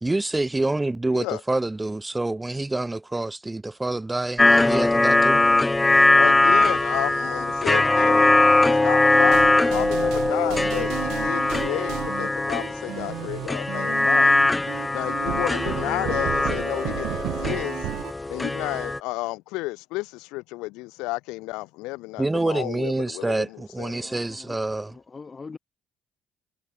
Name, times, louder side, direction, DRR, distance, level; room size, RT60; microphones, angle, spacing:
voice 1, 0.0-5.4 22.2-24.9, right 2 dB, 15° right, 1.2 m, -27 dB
sound 1, 4.4-19.0, left 2 dB, 15° left, 0.3 m, -21 dB
voice 2, 6.1-14.4 14.9-17.8 18.3-23.9, left 22 dB, 85° left, 1.3 m, -32 dB
sound 2, 9.1-18.1, right 18 dB, 80° right, 0.6 m, -33 dB
voice 3, 23.1-23.5 23.9-25.6, left 4 dB, 30° left, 7.0 m, -44 dB
supercardioid pair, 75°, 0 cm